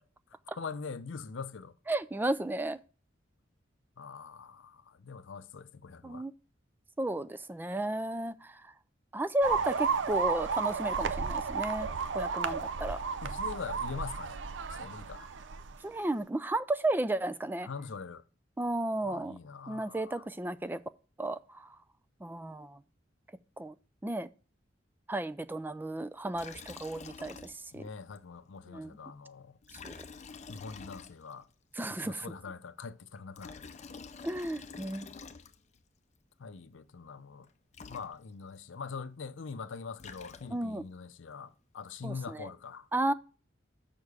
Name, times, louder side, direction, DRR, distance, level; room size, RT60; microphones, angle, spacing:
voice 1, 0.6-1.7 4.0-6.3 13.2-14.4 14.8-15.3 17.6-18.2 19.0-20.2 27.7-29.6 30.5-31.5 31.9-33.7 36.4-37.5 37.9-42.9, left 5 dB, 85° left, 0.6 m, -43 dB
voice 2, 1.9-2.8 6.0-6.3 7.0-8.6 9.1-11.9 12.1-13.0 15.8-17.7 18.6-19.4 19.7-20.8 21.2-21.7 22.2-22.8 23.6-23.7 24.0-24.3 25.1-27.8 28.7-29.0 29.8-29.9 31.7-32.4 34.2-35.1 40.5-40.8 42.0-42.5 42.9-43.1, right 1 dB, 10° right, 0.3 m, -33 dB
sound 1, 9.4-15.8, right 5 dB, 70° right, 0.5 m, -33 dB
Liquid, 26.3-27.9 28.1-28.2 29.6-31.5 33.1-35.8 37.4-37.5 37.7-38.6 39.7-40.8, left 5 dB, 40° left, 0.6 m, -48 dB
6.6 x 5.9 x 4.9 m
head